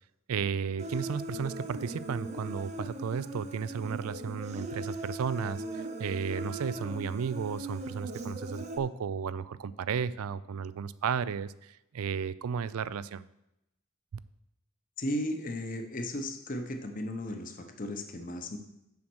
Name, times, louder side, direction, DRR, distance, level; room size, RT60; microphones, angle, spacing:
voice 1, 0.3-13.2, right 6 dB, 85° right, 17 dB, 0.4 m, -34 dB
Human voice, 0.8-8.8, right 1 dB, 30° right, 0.6 m, -39 dB
voice 2, 15.0-18.6, left 1 dB, 40° left, 6 dB, 0.9 m, -35 dB
7.2 x 6.4 x 6.2 m, 0.87 s
head